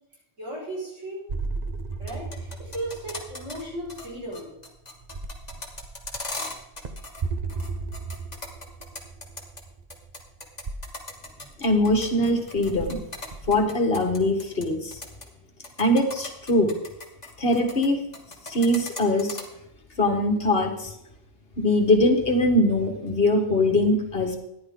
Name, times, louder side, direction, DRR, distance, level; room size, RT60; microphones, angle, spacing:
voice 1, 0.4-1.3 2.0-4.5, right 1 dB, 85° right, -5 dB, 6.0 m, -35 dB
sound 1, 1.3-13.6, right 4 dB, 40° right, 0.9 m, -36 dB
sound 2, 1.9-3.6 3.9-4.1 4.3-7.2 7.5-9.6 9.9-14.6 14.9-15.2 15.6-17.9 18.1-19.4, left 2 dB, 35° left, 2.0 m, -37 dB
voice 2, 11.6-13.0 13.5-15.0 15.8-16.7 17.4-18.0 18.5-19.4 20.0-20.9 21.6-24.4, left 1 dB, 55° left, 4 dB, 1.8 m, -22 dB
14.0 x 10.5 x 3.8 m, 0.83 s
omnidirectional pair, 1.2 m